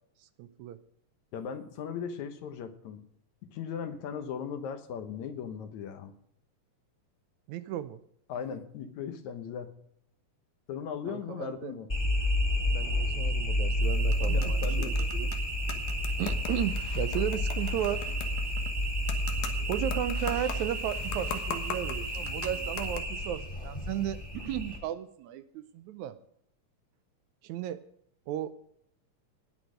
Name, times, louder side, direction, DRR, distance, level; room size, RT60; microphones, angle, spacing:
voice 1, 0.4-0.8 7.5-8.0 11.1-11.7 12.7-15.3 16.2-18.0 19.7-26.2 27.4-27.8 28.3-28.6, right 11 dB, 80° right, 12 dB, 2.0 m, -35 dB
voice 2, 1.3-3.1 3.5-6.1 8.3-9.7 10.7-11.9 14.2-15.1, left 7 dB, 70° left, 8 dB, 2.3 m, -38 dB
sound 1, 11.9-24.8, equal, 20° left, 2.0 m, -30 dB
sound 2, 13.8-23.0, left 7 dB, 90° left, 2.8 m, -42 dB
18.5 x 6.3 x 5.0 m, 0.69 s
omnidirectional pair, 3.5 m